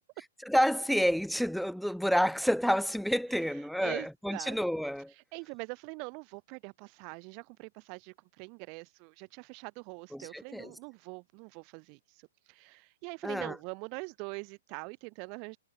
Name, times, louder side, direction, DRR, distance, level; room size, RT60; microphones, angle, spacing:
voice 1, 0.4-5.1 10.1-10.7 13.2-13.6, equal, ahead, 0.5 m, -29 dB
voice 2, 3.8-4.6 5.2-12.0 12.5-15.6, right 37 dB, 35° right, 1.1 m, -43 dB
figure-of-eight pair, 115°, 0 cm